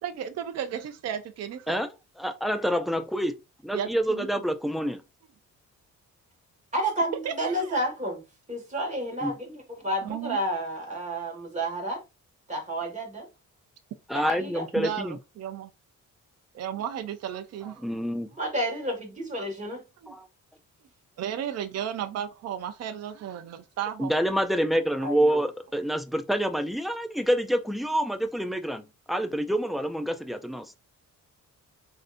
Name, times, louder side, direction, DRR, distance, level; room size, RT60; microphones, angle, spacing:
voice 1, 0.0-1.8 3.7-4.3 7.2-7.8 10.0-10.4 14.8-15.7 16.5-17.8 20.0-20.1 21.2-24.1, right 9 dB, 55° right, 0.6 m, -34 dB
voice 2, 2.2-3.3 3.6-5.0 9.2-9.3 14.1-15.2 17.8-18.3 20.1-20.3 24.0-28.8 29.1-30.7, equal, ahead, 0.4 m, -27 dB
voice 3, 6.7-8.2 8.5-12.0 12.5-13.3 14.1-14.6 18.4-19.8 25.0-25.4, right 1 dB, 25° right, 1.9 m, -30 dB
7.6 x 2.7 x 2.6 m
wide cardioid pair, 160°, 31 cm